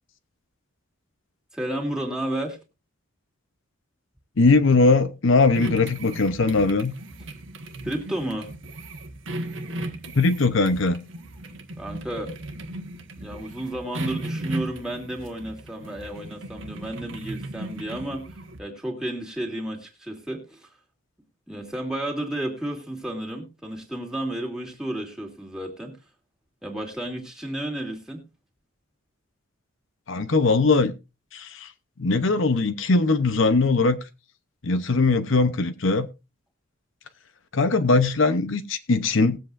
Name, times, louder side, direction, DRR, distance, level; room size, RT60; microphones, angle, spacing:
voice 1, 1.5-2.6 7.8-8.5 11.8-12.3 13.2-18.3 18.6-20.7 21.5-26.0 26.6-28.2, right 1 dB, 5° right, 2.4 m, -32 dB
voice 2, 4.4-6.9 10.1-11.0 30.1-30.9 31.3-31.7 32.0-34.0 34.6-36.1 37.5-39.4, left 3 dB, 65° left, 0.8 m, -20 dB
sound 1, 5.5-18.6, right 1 dB, 65° right, 1.5 m, -36 dB
19.5 x 7.9 x 2.5 m
head